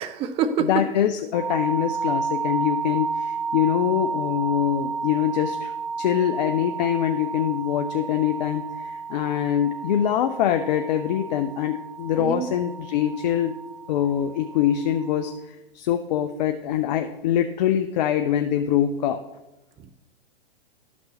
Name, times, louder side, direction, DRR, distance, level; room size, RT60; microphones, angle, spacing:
voice 1, 0.0-0.8 12.2-12.5, right 6 dB, 20° right, 10 dB, 0.5 m, -25 dB
voice 2, 0.6-5.7 6.0-13.5 13.9-15.3 15.7-19.2, left 10 dB, 45° left, 7 dB, 0.5 m, -24 dB
sound 1, 1.3-15.4, right 5 dB, 75° right, 1.5 m, -32 dB
12.5 x 6.0 x 2.9 m, 0.98 s
hypercardioid pair, 115°, 30 cm